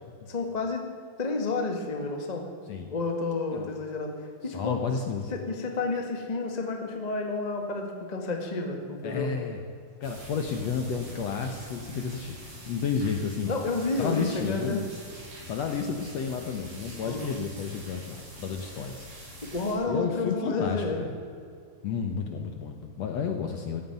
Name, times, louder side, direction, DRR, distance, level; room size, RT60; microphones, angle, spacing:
voice 1, 0.3-0.8 1.2-2.4 2.9-4.1 4.4-4.8 5.3-9.3 13.5-14.8 17.0-17.4 19.4-21.1, left 3 dB, 35° left, 3 dB, 0.6 m, -30 dB
voice 2, 4.5-5.3 9.0-9.6 10.0-12.4 12.7-13.6 14.0-14.8 15.5-19.4 19.9-21.2 21.8-23.8, left 6 dB, 65° left, 4 dB, 1.7 m, -31 dB
sound 1, 10.0-19.7, right 1 dB, 70° right, 6.1 m, -45 dB
16.0 x 9.4 x 9.2 m, 2.4 s
omnidirectional pair, 4.2 m